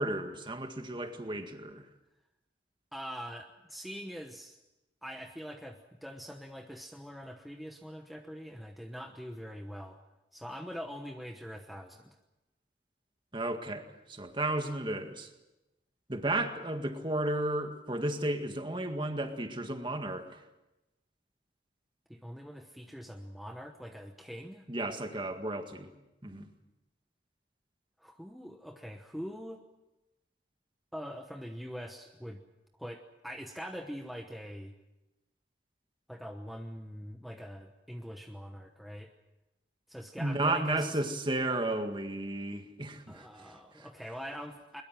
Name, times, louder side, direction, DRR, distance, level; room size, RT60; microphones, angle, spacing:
voice 1, 0.0-1.8 13.3-15.3 16.1-20.4 24.7-25.9 26.2-26.5 40.2-43.5 43.8-43.9, right 2 dB, 25° right, 6 dB, 1.9 m, -33 dB
voice 2, 2.9-4.6 5.0-10.0 10.3-12.2 22.1-24.7 28.0-29.6 30.9-32.4 32.8-34.7 36.1-39.1 39.9-41.0 43.1-44.8, equal, ahead, 3 dB, 1.0 m, -43 dB
22.0 x 22.0 x 7.6 m, 1.0 s
head